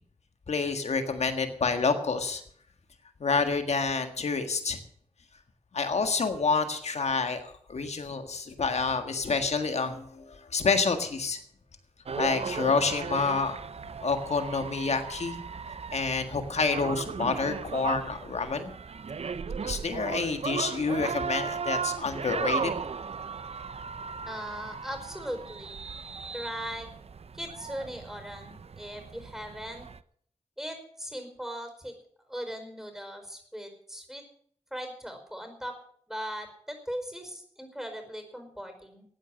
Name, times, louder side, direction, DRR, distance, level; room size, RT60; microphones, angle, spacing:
voice 1, 0.5-2.4 3.2-4.8 5.7-11.4 12.1-13.6 14.0-15.4 15.9-18.7 19.6-22.7, left 4 dB, 80° left, 7 dB, 1.7 m, -28 dB
sound 1, 12.1-30.0, right 5 dB, 70° right, 0.7 m, -36 dB
voice 2, 24.3-25.8 26.3-26.9 27.3-29.9 30.6-31.9 32.3-34.2 34.7-35.7 36.1-39.0, equal, 5° right, 6 dB, 4.9 m, -39 dB
15.0 x 9.1 x 7.6 m, 0.62 s
cardioid pair, 55°, 11 cm